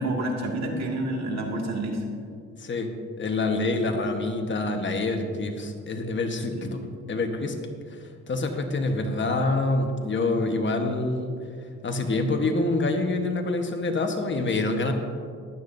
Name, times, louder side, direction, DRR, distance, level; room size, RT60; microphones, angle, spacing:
voice 1, 0.0-2.0 6.6-6.8, right 1 dB, 60° right, 0 dB, 2.2 m, -29 dB
voice 2, 2.6-7.6 7.9-8.0 8.3-11.4 11.8-14.9, left 2 dB, 40° left, 4 dB, 1.3 m, -26 dB
15.0 x 11.5 x 2.7 m, 2.2 s
cardioid pair, 90°, 30 cm